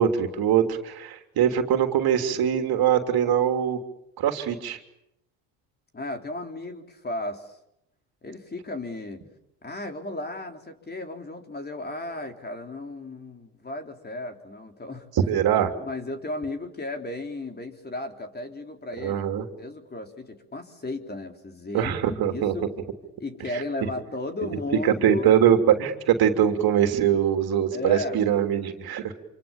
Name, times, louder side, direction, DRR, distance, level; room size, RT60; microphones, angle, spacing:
voice 1, 0.0-3.8 4.2-4.8 15.3-15.7 19.0-19.4 21.7-22.5 24.8-29.1, right 9 dB, 55° right, 5 dB, 3.3 m, -22 dB
voice 2, 5.9-7.6 8.2-9.2 9.6-15.1 15.8-19.2 19.6-22.7 23.2-25.3 27.7-28.2, left 2 dB, 20° left, 5 dB, 3.9 m, -34 dB
27.5 x 26.0 x 7.2 m, 0.83 s
supercardioid pair, 85°, 43 cm